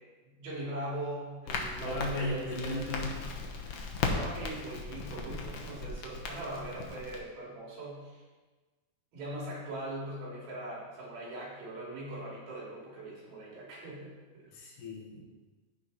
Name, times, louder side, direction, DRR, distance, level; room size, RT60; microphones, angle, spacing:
voice 1, 0.4-2.9 4.1-8.2 9.1-14.5, right 1 dB, 85° right, -5 dB, 4.8 m, -40 dB
Crackle, 1.5-7.2, left 4 dB, 85° left, 1.2 m, -37 dB
voice 2, 1.8-3.1 14.5-15.2, left 1 dB, 65° left, -2 dB, 2.8 m, -36 dB
15.0 x 5.0 x 4.2 m, 1.3 s
omnidirectional pair, 4.2 m